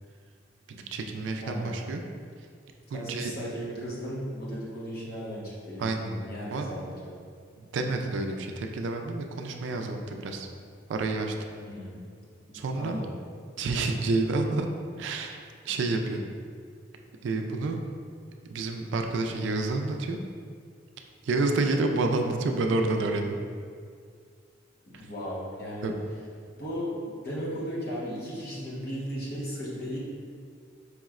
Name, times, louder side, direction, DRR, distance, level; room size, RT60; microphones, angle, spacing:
voice 1, 0.7-2.0 2.9-3.3 5.8-6.1 6.5-6.7 7.6-10.5 10.9-11.4 12.5-13.0 13.6-14.7 15.0-15.4 15.6-16.2 17.2-17.8 18.5-20.2 21.2-23.4 25.8-25.9, right 3 dB, 65° right, 4 dB, 0.3 m, -29 dB
voice 2, 1.4-1.9 2.9-7.2 11.6-12.0 12.5-13.2 24.8-25.9 26.5-30.0, equal, 55° left, -7 dB, 1.0 m, -36 dB
4.8 x 3.0 x 2.4 m, 2.1 s
head